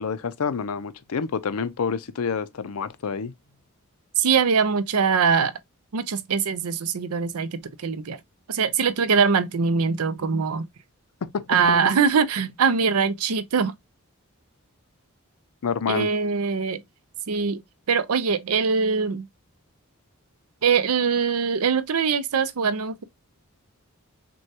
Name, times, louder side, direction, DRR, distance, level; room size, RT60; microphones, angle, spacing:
voice 1, 0.0-3.3 11.2-11.5 15.6-16.1, left 6 dB, 75° left, 0.5 m, -28 dB
voice 2, 4.2-5.6 5.9-8.2 8.5-10.7 11.5-13.7 15.9-16.8 17.3-17.6 17.9-19.3 20.6-23.0, right 5 dB, 85° right, 0.6 m, -22 dB
6.2 x 2.3 x 2.8 m
head